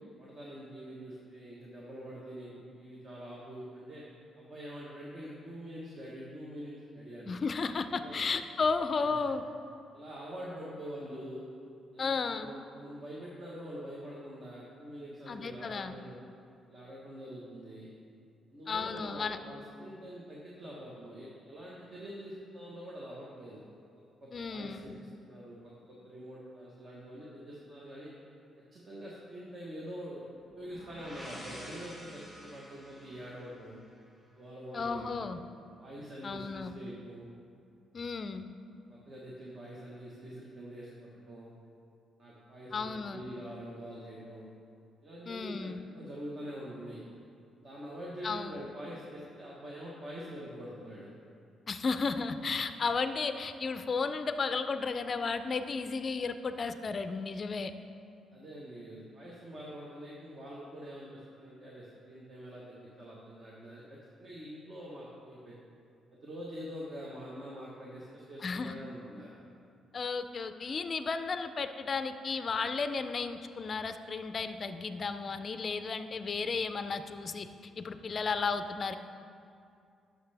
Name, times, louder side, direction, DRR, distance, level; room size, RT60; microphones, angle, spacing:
voice 1, 0.2-4.1 4.4-7.4 8.0-8.2 9.0-9.2 9.9-11.4 11.9-16.2 16.7-17.9 18.5-23.6 23.9-24.9 25.2-28.1 28.6-33.8 34.4-35.3 35.8-37.3 38.9-41.5 42.2-44.5 45.0-47.0 47.6-51.1 58.3-65.6 66.1-69.3, equal, 40° right, -5 dB, 1.2 m, -45 dB
voice 2, 7.3-9.4 12.0-12.5 15.3-16.0 18.7-19.4 24.3-24.9 34.7-35.4 36.2-36.7 37.9-38.5 42.7-43.2 45.3-45.8 48.2-48.7 51.7-57.7 68.4-68.7 69.9-77.5 77.8-79.0, left 4 dB, 40° left, 10 dB, 0.4 m, -33 dB
sound 1, 30.4-34.3, equal, 20° right, 1.9 m, -49 dB
11.0 x 6.4 x 3.4 m, 2.4 s
cardioid pair, 120°, 0 cm